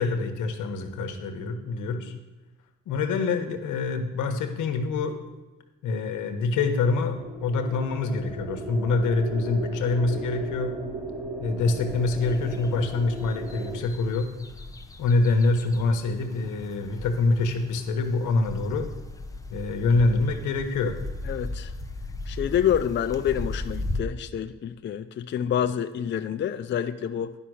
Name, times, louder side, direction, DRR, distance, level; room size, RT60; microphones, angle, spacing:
voice 1, 0.0-2.1 2.9-5.2 5.8-10.7 11.4-14.3 15.0-18.9 19.5-21.0, left 3 dB, 85° left, 6 dB, 1.2 m, -25 dB
sound 1, 6.7-13.8, right 2 dB, 5° right, 3.0 m, -36 dB
sound 2, 11.9-24.0, left 2 dB, 10° left, 0.8 m, -37 dB
voice 2, 21.2-21.7 22.3-27.4, left 9 dB, 40° left, 10 dB, 0.4 m, -27 dB
10.0 x 5.6 x 6.3 m, 1.2 s
cardioid pair, 90°, 30 cm